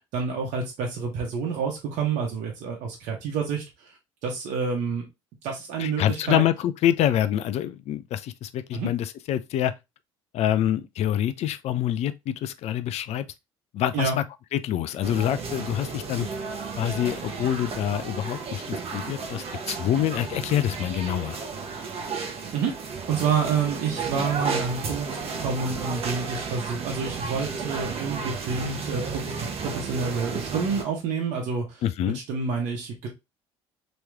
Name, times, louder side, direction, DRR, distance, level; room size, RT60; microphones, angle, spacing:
voice 1, 0.0-3.9 4.2-5.1 5.4-6.4 8.7-8.9 13.9-14.2 22.5-22.7 23.1-25.1 25.3-31.8 32.3-33.1, right 5 dB, 65° right, 1.2 m, -28 dB
voice 2, 5.8-9.7 10.3-13.3 13.7-14.2 14.5-16.3 16.8-21.4 31.8-32.2, left 11 dB, 55° left, 0.4 m, -26 dB
sound 1, 15.0-30.8, right 5 dB, 45° right, 1.0 m, -33 dB
3.1 x 3.0 x 3.5 m
hypercardioid pair, 55°, 14 cm